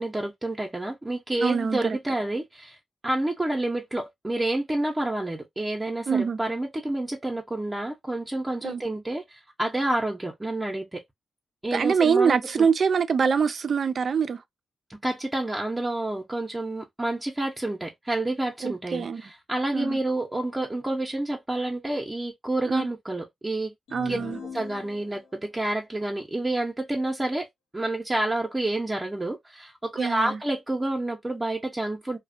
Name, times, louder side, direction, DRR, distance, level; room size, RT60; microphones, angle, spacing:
voice 1, 0.0-2.8 3.0-11.0 11.6-12.7 14.9-23.7 24.0-24.2 24.5-27.5 27.7-32.2, right 1 dB, 20° right, 0.6 m, -29 dB
voice 2, 1.4-2.0 6.1-6.4 8.6-8.8 11.7-14.4 18.6-19.2 19.7-20.0 22.7-22.9 23.9-24.4 30.0-30.3, right 6 dB, 65° right, 0.3 m, -24 dB
sound 1, 23.9-25.5, left 4 dB, 90° left, 0.7 m, -40 dB
2.4 x 2.1 x 2.4 m
supercardioid pair, 45°, 0 cm